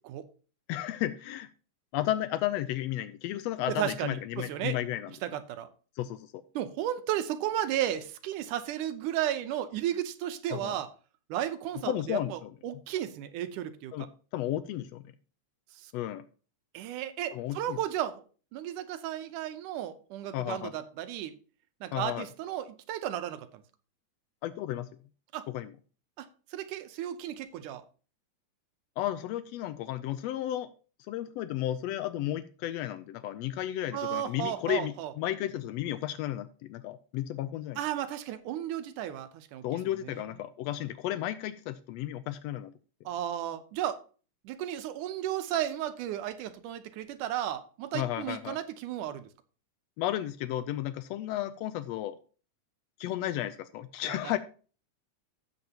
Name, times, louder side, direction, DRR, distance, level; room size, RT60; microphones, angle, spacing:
voice 1, 0.7-1.5 1.9-5.1 6.0-6.4 10.5-10.7 11.9-12.5 13.9-14.1 14.3-15.0 15.9-16.2 17.3-17.8 20.3-20.7 21.9-22.3 24.4-24.9 25.5-25.7 29.0-30.7 31.1-37.8 39.6-42.7 47.9-48.6 50.0-52.2 53.0-54.4, left 13 dB, 90° left, 13 dB, 1.4 m, -33 dB
voice 2, 3.7-4.8 5.2-5.7 6.6-10.9 11.3-14.1 15.7-15.9 16.7-18.2 18.5-21.3 21.8-23.6 25.3-25.5 26.2-27.8 33.9-35.1 37.8-39.6 40.1-40.2 43.1-44.0 44.4-49.3 54.1-54.3, right 11 dB, 85° right, 10 dB, 2.4 m, -34 dB
13.5 x 8.0 x 2.9 m, 0.38 s
omnidirectional pair, 3.5 m